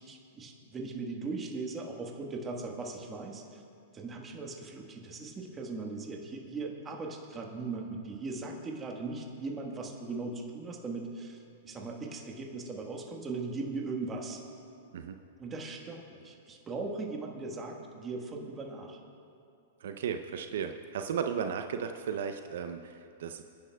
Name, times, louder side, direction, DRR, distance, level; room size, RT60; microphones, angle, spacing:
voice 1, 0.0-3.6 3.9-14.4 15.4-19.0, right 3 dB, 20° right, 1 dB, 1.4 m, -39 dB
voice 2, 19.8-23.4, right 7 dB, 70° right, 7 dB, 0.6 m, -35 dB
27.0 x 10.0 x 2.3 m, 2.7 s
hypercardioid pair, 140°, 0 cm